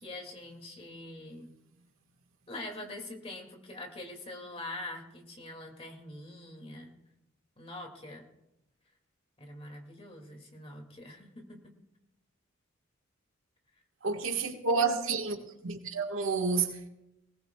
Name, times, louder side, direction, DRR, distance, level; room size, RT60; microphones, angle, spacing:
voice 1, 0.0-1.5 2.5-6.9 7.6-8.2 9.4-11.6, left 1 dB, 30° left, 2.3 m, -44 dB
voice 2, 14.0-15.4 15.6-16.8, right 4 dB, 85° right, 1.5 m, -29 dB
20.5 x 18.5 x 2.3 m
head